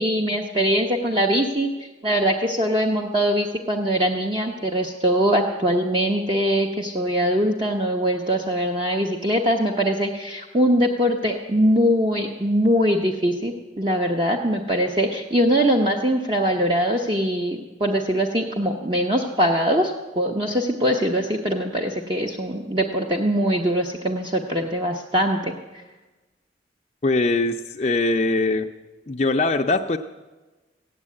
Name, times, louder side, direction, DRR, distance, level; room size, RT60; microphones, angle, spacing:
voice 1, 0.0-25.8, equal, 25° right, 1 dB, 0.9 m, -22 dB
voice 2, 27.0-28.7 29.1-30.0, left 2 dB, 35° left, 3 dB, 0.5 m, -21 dB
15.5 x 8.8 x 9.6 m, 1.2 s
head